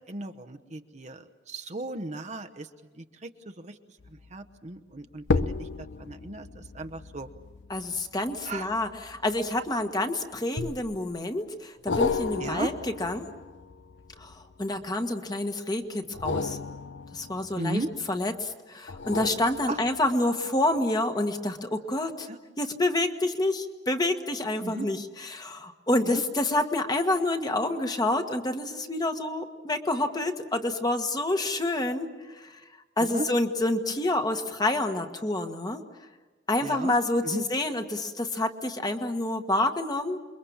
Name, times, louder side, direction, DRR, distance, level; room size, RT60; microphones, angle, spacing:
voice 1, 0.1-2.7 3.0-3.3 3.6-3.7 4.3-7.3 8.4-8.7 12.4-12.7 17.5-17.9 19.7-19.8 22.3-22.4 24.6-24.9 26.0-26.2 33.0-33.3 36.6-36.9 37.2-37.4, right 2 dB, 40° right, 7 dB, 1.0 m, -36 dB
sound 1, 4.0-4.3 5.2-9.9 10.6-11.2 11.9-14.9 16.1-18.1 18.9-20.3 20.8-20.9, left 4 dB, 85° left, 0.8 m, -34 dB
voice 2, 7.7-12.7 13.0-13.3 14.2-14.3 14.6-16.6 17.1-17.8 18.1-22.3 22.6-32.1 32.4-32.5 33.0-35.8 36.5-40.2, left 2 dB, 20° left, 5 dB, 1.5 m, -28 dB
28.5 x 22.5 x 7.3 m, 1.3 s
head